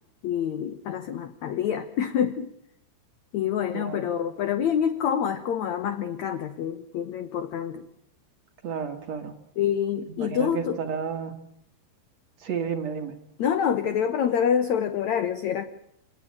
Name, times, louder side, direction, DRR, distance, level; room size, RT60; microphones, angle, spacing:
voice 1, 0.2-2.5 3.3-7.9 9.6-10.8 13.4-15.7, left 8 dB, 65° left, 11 dB, 1.8 m, -26 dB
voice 2, 3.7-4.1 8.6-9.3 10.1-11.4 12.4-13.2, right 6 dB, 50° right, 6 dB, 2.5 m, -32 dB
27.0 x 19.0 x 8.6 m, 0.77 s
omnidirectional pair, 4.7 m